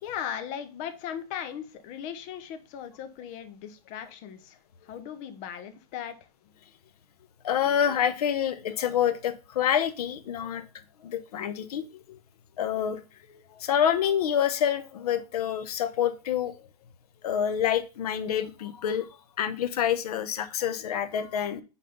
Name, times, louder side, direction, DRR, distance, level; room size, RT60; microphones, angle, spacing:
voice 1, 0.0-4.6 4.8-6.2, left 9 dB, 40° left, 9 dB, 0.9 m, -38 dB
voice 2, 7.4-10.6 11.0-12.2 12.6-13.0 13.3-16.5 17.2-19.1 19.4-21.6, left 9 dB, 75° left, 12 dB, 0.9 m, -27 dB
5.5 x 4.2 x 5.4 m, 0.32 s
supercardioid pair, 145°, 20 cm